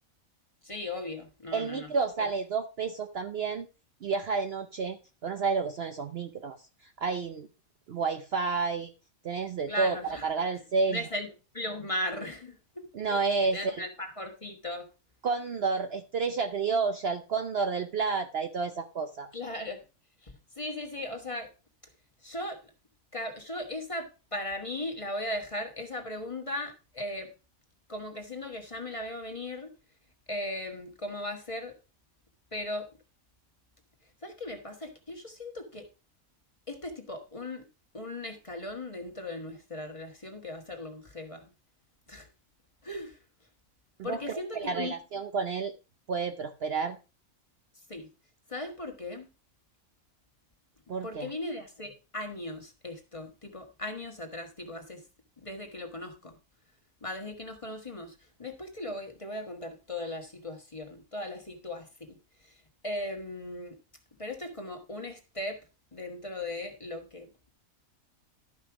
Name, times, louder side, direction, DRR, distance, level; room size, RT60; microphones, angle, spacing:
voice 1, 0.6-1.9 2.2-2.3 9.7-10.3 10.9-11.3 11.5-14.9 19.3-19.8 20.2-21.5 22.2-22.7 23.1-27.3 27.9-29.7 30.3-31.7 32.5-32.9 34.2-35.9 36.7-37.6 37.9-41.5 42.1-42.3 42.8-43.2 44.0-44.9 47.9-48.1 48.5-49.3 51.0-55.0 55.4-56.4 57.0-63.8 64.2-65.6 65.9-67.3, left 1 dB, 25° left, 4 dB, 1.5 m, -38 dB
voice 2, 1.5-3.7 4.0-5.0 5.2-6.6 6.8-7.5 7.9-8.9 9.2-10.0 10.2-11.0 12.9-13.8 15.2-19.3 44.0-45.7 46.1-47.0 50.9-51.3, right 4 dB, 55° right, 7 dB, 0.8 m, -30 dB
12.5 x 5.6 x 4.7 m, 0.32 s
omnidirectional pair, 1.5 m